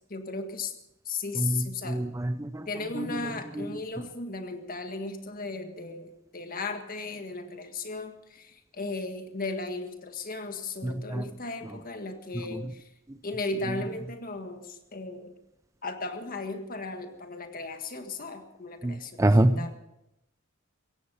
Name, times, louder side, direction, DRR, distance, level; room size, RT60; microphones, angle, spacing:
voice 1, 0.1-0.7 1.0-2.0 2.7-12.8 13.2-15.3 15.8-19.7, left 3 dB, 45° left, 7 dB, 1.7 m, -36 dB
voice 2, 1.4-2.7 3.0-3.1 3.6-3.7 10.8-11.2 12.5-12.6 18.8-19.7, right 1 dB, 15° right, 12 dB, 0.5 m, -26 dB
16.5 x 15.0 x 5.5 m, 0.87 s
head